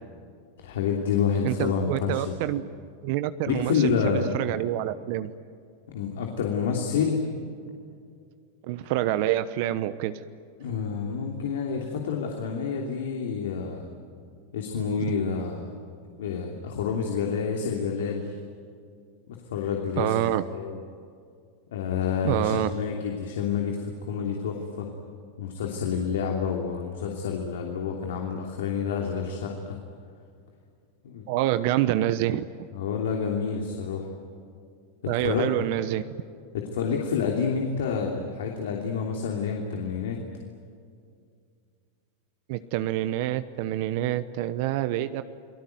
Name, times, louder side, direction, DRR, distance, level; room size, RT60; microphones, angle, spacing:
voice 1, 0.6-2.6 3.5-4.3 5.9-7.2 10.6-13.9 14.5-15.8 16.2-18.4 19.5-20.8 21.7-24.9 25.4-29.8 31.0-31.3 32.7-34.1 35.2-35.4 36.5-40.2, left 6 dB, 80° left, 1 dB, 2.9 m, -28 dB
voice 2, 1.4-2.6 3.0-5.3 8.6-10.2 20.0-20.4 22.2-22.7 31.3-32.5 35.1-36.0 42.5-45.2, right 13 dB, 60° right, 12 dB, 1.0 m, -27 dB
29.0 x 19.0 x 9.4 m, 2.3 s
hypercardioid pair, 120°, 0 cm